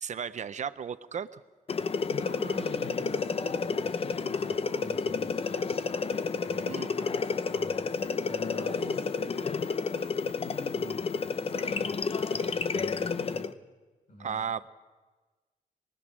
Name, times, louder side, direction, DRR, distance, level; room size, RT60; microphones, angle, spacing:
voice 1, 0.0-1.4 6.6-6.9 14.2-14.7, right 7 dB, 55° right, 13 dB, 0.7 m, -35 dB
sound 1, 1.7-13.5, left 5 dB, 40° left, 0.7 m, -30 dB
voice 2, 2.1-5.8 6.4-7.8 8.2-11.1 11.4-13.5 14.1-14.4, left 2 dB, 60° left, 2 dB, 6.8 m, -44 dB
24.5 x 20.0 x 6.2 m, 1.3 s
wide cardioid pair, 125°, 15 cm